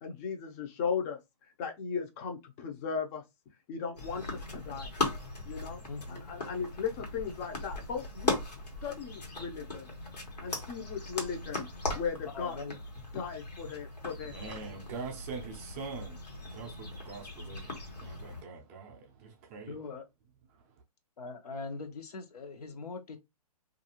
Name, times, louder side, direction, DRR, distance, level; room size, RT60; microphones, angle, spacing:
voice 1, 0.0-1.2 1.6-3.2 3.7-4.9 5.4-9.9 10.4-11.7 11.9-12.6 13.1-14.3, left 6 dB, 25° left, 0.5 m, -37 dB
sound 1, 4.0-18.4, left 2 dB, 90° left, 1.2 m, -39 dB
voice 2, 5.9-6.3 12.3-12.8 19.7-20.0 21.2-23.2, left 4 dB, 70° left, 0.8 m, -41 dB
voice 3, 14.3-19.8 20.5-20.7, right 4 dB, 25° right, 0.5 m, -44 dB
2.4 x 2.3 x 2.9 m
hypercardioid pair, 145°, 20 cm